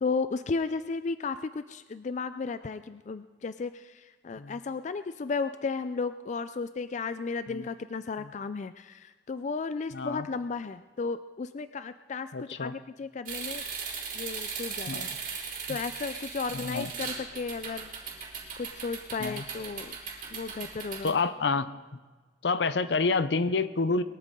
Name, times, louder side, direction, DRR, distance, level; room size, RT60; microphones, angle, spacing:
voice 1, 0.0-13.7 14.1-15.1 15.7-17.9 18.6-20.0 20.3-21.1, left 4 dB, 40° left, 12 dB, 0.4 m, -34 dB
voice 2, 9.9-10.3 12.3-12.7 14.9-15.0 15.7-15.8 16.5-16.9 19.2-19.4 21.0-21.7 22.4-24.0, left 4 dB, 70° left, 13 dB, 0.7 m, -28 dB
sound 1, 13.2-21.1, right 5 dB, 50° right, 3.8 m, -38 dB
22.0 x 13.5 x 3.7 m, 1.4 s
head